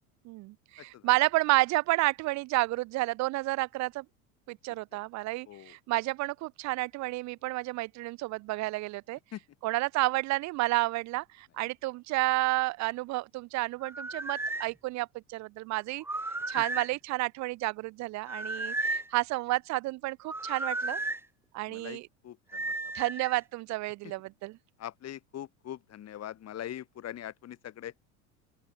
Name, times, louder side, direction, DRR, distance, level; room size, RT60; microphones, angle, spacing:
voice 1, 0.3-4.0 4.5-9.2 9.6-16.0 16.5-21.0 21.5-22.1 22.9-24.6, right 20 dB, 40° right, 0.5 m, -30 dB
sound 1, 13.8-14.7 16.0-16.9 18.2-19.1 20.3-21.2 22.5-23.4, right 2 dB, 5° right, 0.9 m, -34 dB
voice 2, 21.7-22.7 24.0-24.1 24.8-27.9, left 11 dB, 35° left, 1.7 m, -42 dB
open air
hypercardioid pair, 85°, 43 cm